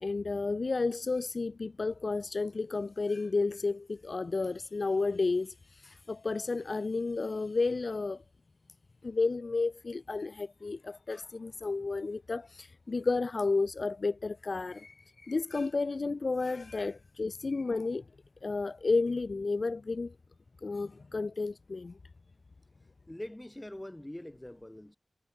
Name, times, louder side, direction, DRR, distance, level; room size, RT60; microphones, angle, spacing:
voice 1, 0.0-8.2 9.0-18.0 18.4-20.2 20.6-22.0, left 3 dB, 55° left, 0.3 m, -32 dB
voice 2, 23.1-25.0, left 1 dB, 15° left, 4.9 m, -43 dB
wide cardioid pair, 70°, 0 cm